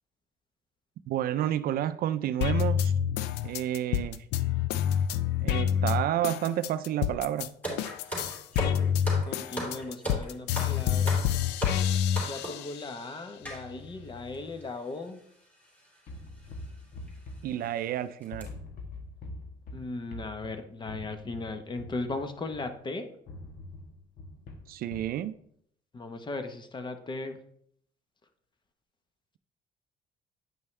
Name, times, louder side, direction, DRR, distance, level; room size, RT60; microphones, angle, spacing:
voice 1, 1.1-2.9 3.4-4.2 5.4-7.5 17.4-18.5 24.7-25.4, right 11 dB, 60° right, 0.4 m, -30 dB
sound 1, 2.4-7.5 7.8-13.0 13.4-14.4, left 9 dB, 85° left, 0.4 m, -28 dB
sound 2, 7.6-12.7 13.4-13.6 14.3-14.4 14.6-14.8 15.8-16.0 16.4-16.5 17.1-17.2 17.6-17.8 18.2-18.4, right 1 dB, 10° left, 3.2 m, -36 dB
voice 2, 9.2-11.3 12.2-15.2 19.7-23.1 25.9-27.4, left 2 dB, 25° left, 0.9 m, -37 dB
sound 3, 16.1-18.0 18.3-22.8 23.3-25.2, left 2 dB, 60° left, 1.3 m, -44 dB
9.1 x 5.4 x 3.2 m
cardioid pair, 110°, 17 cm